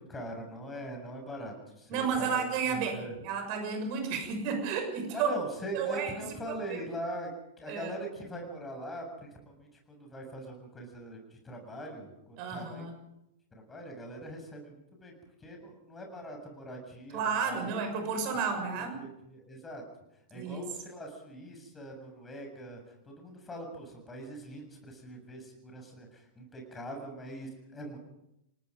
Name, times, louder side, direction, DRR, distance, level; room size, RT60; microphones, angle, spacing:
voice 1, 0.0-2.3 2.7-3.2 5.1-7.3 7.6-12.8 13.5-15.1 15.4-17.7 19.0-19.8 20.3-22.8 23.1-28.0, right 1 dB, 15° left, 2 dB, 7.3 m, -42 dB
voice 2, 1.9-5.3 5.7-6.8 7.7-7.9 12.4-12.9 17.1-19.1 20.3-20.7, right 6 dB, 45° right, 6 dB, 6.7 m, -32 dB
30.0 x 19.0 x 5.3 m, 0.84 s
figure-of-eight pair, 100°, 0 cm